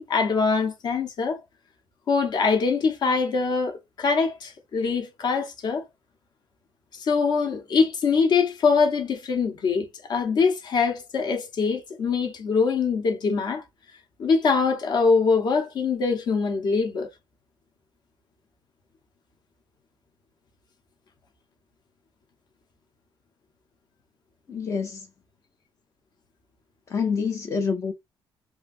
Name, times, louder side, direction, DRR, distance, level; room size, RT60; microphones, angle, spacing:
voice 1, 0.0-1.4 2.1-5.8 6.9-13.6 14.2-17.1, left 5 dB, 55° left, 0.9 m, -23 dB
voice 2, 24.5-25.1 26.9-27.9, left 5 dB, 35° left, 0.5 m, -27 dB
3.1 x 2.5 x 2.5 m
cardioid pair, 150°, 9 cm